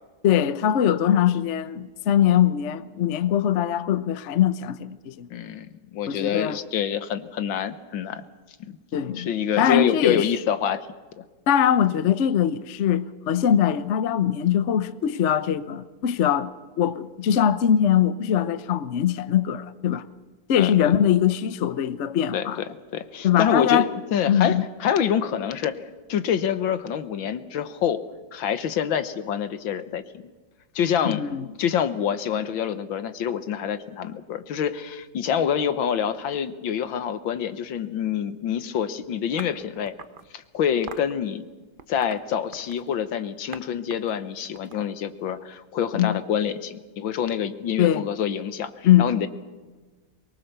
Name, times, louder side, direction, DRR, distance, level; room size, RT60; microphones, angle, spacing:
voice 1, 0.2-5.3 6.1-6.6 8.9-9.3 9.6-10.3 11.5-16.5 16.8-20.1 20.5-22.6 23.2-23.9 24.3-24.6 31.0-31.5 45.9-46.2 47.8-48.1 48.8-49.1, left 9 dB, 55° left, 0.8 m, -22 dB
voice 2, 5.3-8.2 8.6-8.8 9.2-10.9 11.2-11.3 20.6-21.1 22.3-22.5 22.9-23.9 24.1-25.8 26.1-28.0 28.3-30.0 30.8-31.2 31.6-40.0 40.3-41.5 41.9-49.3, left 8 dB, 80° left, 1.8 m, -26 dB
sound 1, 39.4-40.3 40.9-41.1 41.8-42.9 43.5-43.6 43.9-45.3, right 6 dB, 55° right, 0.5 m, -42 dB
23.5 x 21.5 x 6.7 m
omnidirectional pair, 2.1 m